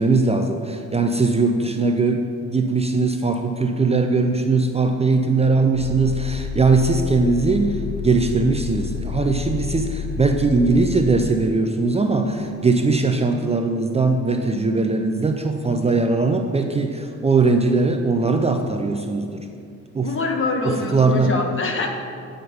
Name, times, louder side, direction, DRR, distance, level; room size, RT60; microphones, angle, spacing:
voice 1, 0.0-19.4 19.9-20.1 20.6-21.3, right 3 dB, 20° right, 5 dB, 0.5 m, -20 dB
sound 1, 5.7-11.3, left 8 dB, 75° left, 0.9 m, -30 dB
voice 2, 20.0-21.9, left 3 dB, 40° left, 3 dB, 1.3 m, -24 dB
9.2 x 5.1 x 5.6 m, 2.4 s
cardioid pair, 90°, 30 cm